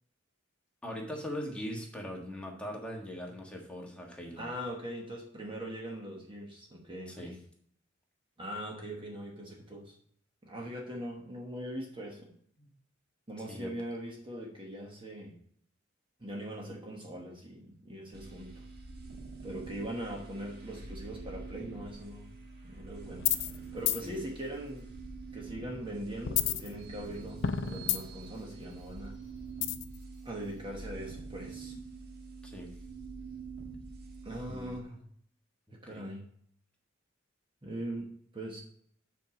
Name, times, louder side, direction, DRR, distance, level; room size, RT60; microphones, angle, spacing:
voice 1, 0.8-4.5 7.1-7.3 12.6-12.7 13.5-13.7 24.0-24.2 32.4-32.7 34.5-34.8 35.9-36.1, equal, 5° left, -1 dB, 1.5 m, -41 dB
voice 2, 4.4-7.4 8.4-9.9 10.4-12.3 13.3-15.4 16.2-18.7 19.4-22.4 22.6-24.9 25.3-29.2 30.2-31.7 34.2-35.0 35.8-36.3 37.6-38.6, right 1 dB, 25° right, 0 dB, 1.2 m, -41 dB
sound 1, 18.1-34.8, right 4 dB, 55° right, 1.3 m, -46 dB
sound 2, 23.2-23.6 23.9-24.0 26.2-27.1 27.4-28.3 29.6-30.0, left 10 dB, 65° left, 0.5 m, -30 dB
8.5 x 4.6 x 4.9 m, 0.64 s
head